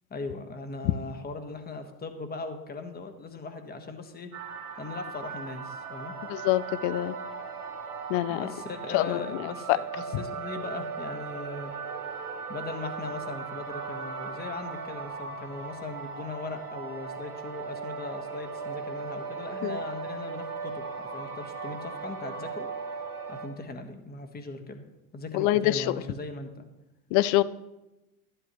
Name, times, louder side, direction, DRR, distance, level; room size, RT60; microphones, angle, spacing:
voice 1, 0.1-4.3 4.8-6.1 8.3-11.7 12.5-22.7 23.3-24.8 25.1-26.7, left 3 dB, 20° left, 7 dB, 1.5 m, -39 dB
sound 1, 4.3-23.5, right 5 dB, 90° right, 2.2 m, -38 dB
voice 2, 6.3-7.1 8.1-8.4 8.9-9.2 19.6-19.8 25.3-25.8 27.1-27.4, left 15 dB, 45° left, 18 dB, 0.6 m, -25 dB
12.0 x 11.5 x 3.1 m, 0.97 s
hypercardioid pair, 90°, 44 cm